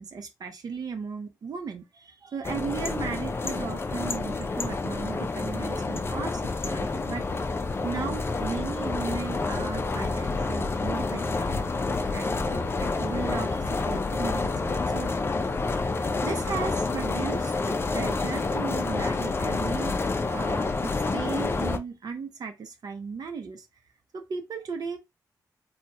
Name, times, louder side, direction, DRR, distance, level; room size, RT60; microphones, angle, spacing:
voice 1, 0.0-7.3 7.8-11.6 12.1-15.1 15.9-19.9 20.3-23.7 24.1-25.0, right 5 dB, 60° right, 0.8 m, -36 dB
sound 1, 2.4-21.8, left 3 dB, 35° left, 0.5 m, -28 dB
sound 2, 6.4-14.8, left 4 dB, 55° left, 0.8 m, -48 dB
3.3 x 2.3 x 2.8 m
cardioid pair, 70°, 7 cm